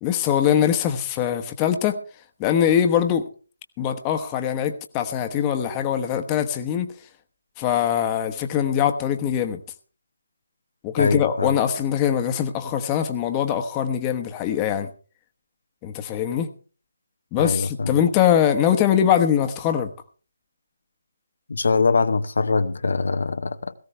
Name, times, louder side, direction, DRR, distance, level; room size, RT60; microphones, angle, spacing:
voice 1, 0.0-2.0 2.4-3.3 3.8-6.9 7.6-9.6 10.8-14.9 15.8-16.5 17.3-19.9, left 9 dB, 20° left, 1.2 m, -22 dB
voice 2, 11.0-11.5 17.4-17.9 21.5-23.7, left 4 dB, 65° left, 0.9 m, -22 dB
18.0 x 15.5 x 3.3 m
figure-of-eight pair, 150°, 0 cm